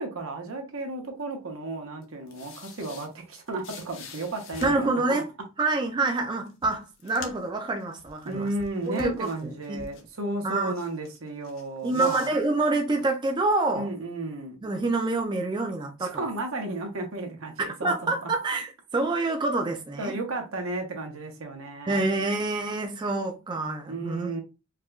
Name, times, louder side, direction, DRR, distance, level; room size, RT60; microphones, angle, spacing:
voice 1, 0.0-5.2 8.2-12.3 13.7-14.6 16.0-18.3 20.0-22.0 23.9-24.4, right 2 dB, 80° right, 0.9 m, -33 dB
sound 1, 2.0-4.9 6.0-6.1 6.5-7.6 7.9-10.1 10.5-11.2 11.4-13.1, left 4 dB, 65° left, 0.7 m, -45 dB
voice 2, 4.6-5.3 5.6-8.5 8.9-9.9 10.4-10.7 11.8-13.9 14.6-16.2 17.6-20.2 21.9-24.3, right 2 dB, 20° right, 0.3 m, -27 dB
4.6 x 2.2 x 2.4 m
head